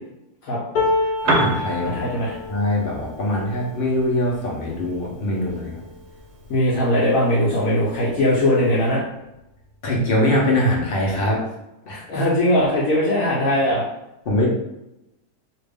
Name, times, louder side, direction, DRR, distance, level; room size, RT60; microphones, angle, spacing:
sound 1, 0.8-6.9 7.5-7.7 8.0-8.7 9.7-9.8, left 2 dB, 85° left, 1.3 m, -30 dB
voice 1, 1.2-5.8 9.8-11.4 11.9-12.3 14.3-14.5, left 1 dB, 50° left, -3 dB, 0.7 m, -23 dB
Piano, 1.2-9.0, right 2 dB, 85° right, 1.2 m, -32 dB
voice 2, 1.8-2.3 6.5-9.0 12.1-13.8, left 1 dB, 65° left, -6 dB, 1.1 m, -20 dB
2.9 x 2.5 x 3.3 m, 0.91 s
omnidirectional pair, 1.7 m